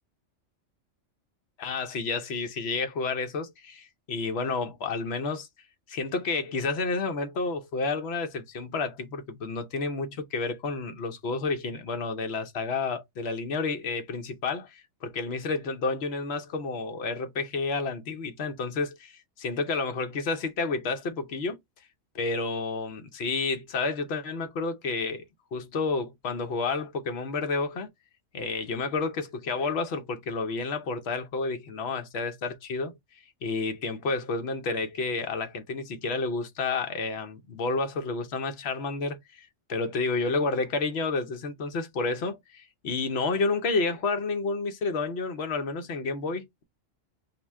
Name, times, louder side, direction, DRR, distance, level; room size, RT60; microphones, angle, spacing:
voice 1, 1.6-5.5 5.9-21.6 22.1-25.2 25.5-27.9 28.3-32.9 33.4-46.6, left 3 dB, 60° left, 0.9 m, -30 dB
4.2 x 2.2 x 3.5 m
omnidirectional pair, 1.3 m